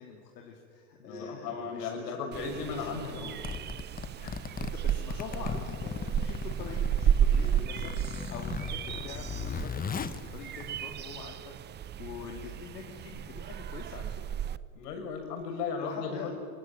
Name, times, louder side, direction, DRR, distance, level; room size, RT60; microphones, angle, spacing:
voice 1, 0.0-3.5 4.6-14.4 15.8-16.3, left 6 dB, 90° left, 0 dB, 3.2 m, -45 dB
voice 2, 1.0-3.3 4.2-4.4 5.3-5.4 7.3-7.7 14.7-16.3, left 5 dB, 75° left, 4 dB, 6.8 m, -36 dB
sound 1, 2.3-14.6, right 9 dB, 20° right, 0.6 m, -33 dB
Zipper (clothing), 3.3-11.2, left 6 dB, 20° left, 1.1 m, -38 dB
24.5 x 24.0 x 9.0 m, 2.1 s
hypercardioid pair, 105°, 48 cm